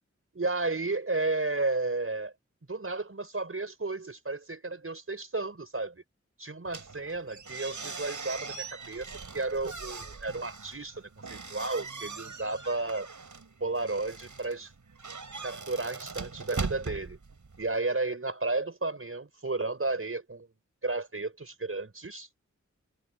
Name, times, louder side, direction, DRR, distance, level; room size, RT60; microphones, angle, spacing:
voice 1, 0.3-2.3 2.7-6.0 6.4-13.1 13.6-14.7 15.4-17.2 17.6-20.5 20.8-22.3, right 3 dB, 50° right, 5.3 m, -33 dB
sound 1, 6.6-17.8, right 4 dB, 85° right, 6.8 m, -41 dB
wide cardioid pair, 70°, 30 cm